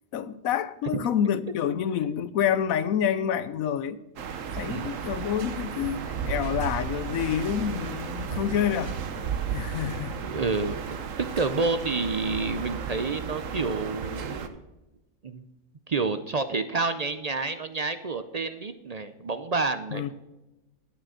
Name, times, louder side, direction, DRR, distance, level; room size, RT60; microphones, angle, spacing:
voice 1, 0.1-4.0 4.6-9.0 9.5-10.2 19.9-20.1, left 9 dB, 85° left, 1.1 m, -28 dB
sound 1, 4.2-14.5, right 7 dB, 70° right, 1.3 m, -34 dB
voice 2, 10.3-14.6 15.2-15.4 15.9-20.1, right 3 dB, 50° right, 0.5 m, -29 dB
11.5 x 6.8 x 6.2 m
omnidirectional pair, 1.4 m